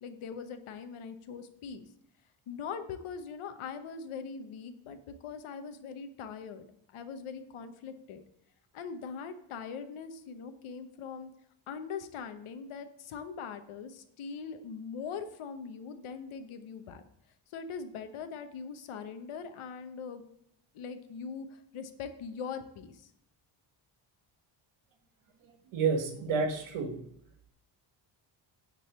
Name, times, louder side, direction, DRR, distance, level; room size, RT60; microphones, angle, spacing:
voice 1, 0.0-1.9 2.5-6.7 6.9-8.2 8.7-11.3 11.7-17.0 17.5-20.3 20.7-21.5 21.7-23.1, left 6 dB, 85° left, 8 dB, 1.1 m, -41 dB
voice 2, 25.7-27.0, right 5 dB, 90° right, 5 dB, 1.6 m, -29 dB
9.6 x 4.0 x 6.6 m, 0.75 s
cardioid pair, 130°, 48 cm